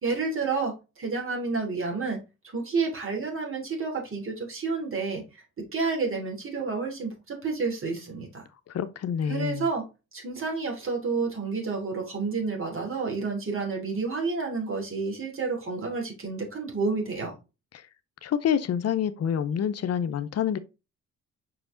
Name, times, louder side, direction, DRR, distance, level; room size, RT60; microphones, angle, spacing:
voice 1, 0.0-2.2 2.5-5.2 5.6-8.4 9.3-9.8 10.1-17.3, right 4 dB, 45° right, 3.4 m, -30 dB
voice 2, 8.7-9.7 18.2-20.6, left 8 dB, 55° left, 0.7 m, -27 dB
5.8 x 4.9 x 3.8 m
cardioid pair, 90°, 30 cm